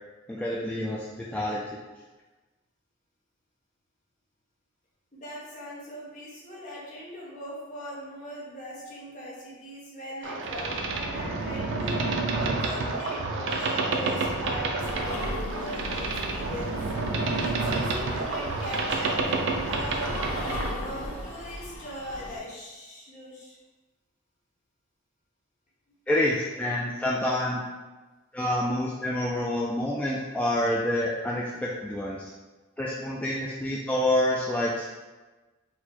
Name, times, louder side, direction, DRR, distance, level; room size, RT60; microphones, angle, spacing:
voice 1, 0.3-1.8 26.1-27.6 28.3-32.2 32.8-34.9, left 1 dB, 5° left, -5 dB, 0.3 m, -27 dB
voice 2, 5.1-12.0 12.4-16.8 17.4-20.1 20.7-23.6, equal, 40° left, -5 dB, 1.2 m, -40 dB
Boat Water vehicle, 10.2-20.8, right 3 dB, 65° right, 0.5 m, -29 dB
sound 1, 14.8-22.4, equal, 90° left, 0.8 m, -37 dB
4.3 x 2.2 x 4.2 m, 1.2 s
head